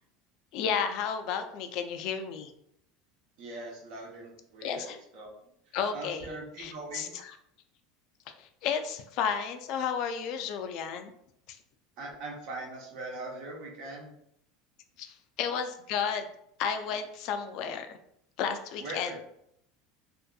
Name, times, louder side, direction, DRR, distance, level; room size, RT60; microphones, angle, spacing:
voice 1, 0.5-2.5 4.6-5.0 5.7-6.3 6.6-7.4 8.4-11.1 11.5-11.6 15.0-16.2 16.6-18.0 18.4-19.2, left 7 dB, 60° left, 7 dB, 0.3 m, -32 dB
voice 2, 3.4-5.3 5.9-7.1 12.0-14.1 18.8-19.2, right 2 dB, 65° right, -1 dB, 0.8 m, -41 dB
2.6 x 2.5 x 2.3 m, 0.73 s
supercardioid pair, 130°, 0 cm